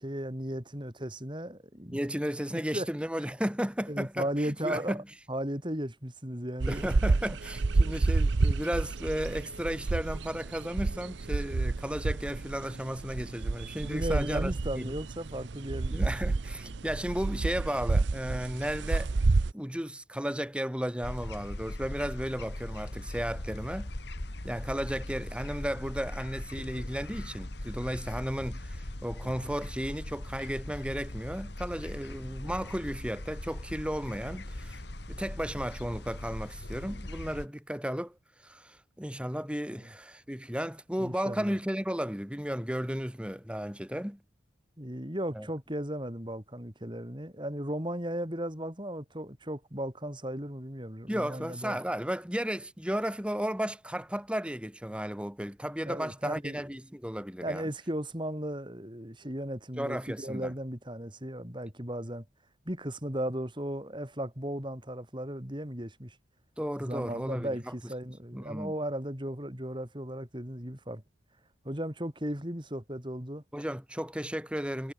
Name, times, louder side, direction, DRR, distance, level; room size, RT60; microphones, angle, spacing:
voice 1, 0.0-2.0 2.5-2.9 3.9-7.4 13.8-16.8 39.7-39.9 41.0-41.5 44.8-51.8 55.8-56.6 57.4-62.2 62.7-66.2 66.8-71.0 71.6-73.4, right 1 dB, 25° right, 4.2 m, -36 dB
voice 2, 1.9-5.0 6.7-14.9 15.9-19.1 19.5-23.9 24.4-34.8 35.1-38.1 38.4-44.2 45.4-45.5 51.1-57.7 59.8-60.5 66.6-67.6 68.3-68.7 73.5-74.9, equal, 5° right, 2.2 m, -34 dB
sound 1, 6.6-19.5, right 3 dB, 60° right, 0.6 m, -29 dB
Tuesday afternoon outdoors, 21.0-37.5, left 1 dB, 55° left, 2.1 m, -40 dB
head